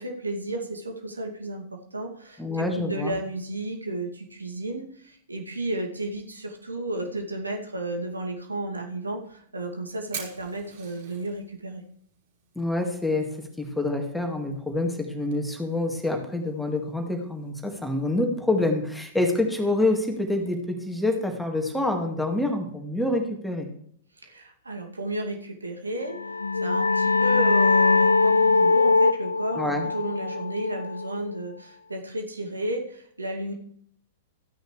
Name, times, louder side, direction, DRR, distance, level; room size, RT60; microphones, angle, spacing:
voice 1, 0.0-11.8 24.2-33.5, right 1 dB, 75° right, 2 dB, 2.4 m, -33 dB
voice 2, 2.4-3.2 12.6-23.7 29.6-29.8, left 2 dB, 5° left, 3 dB, 2.0 m, -27 dB
Fire, 9.1-20.6, right 7 dB, 50° right, 4.4 m, -49 dB
sound 1, 26.1-31.4, left 3 dB, 75° left, 0.5 m, -22 dB
15.0 x 10.5 x 3.3 m, 0.64 s
figure-of-eight pair, 105°, 0 cm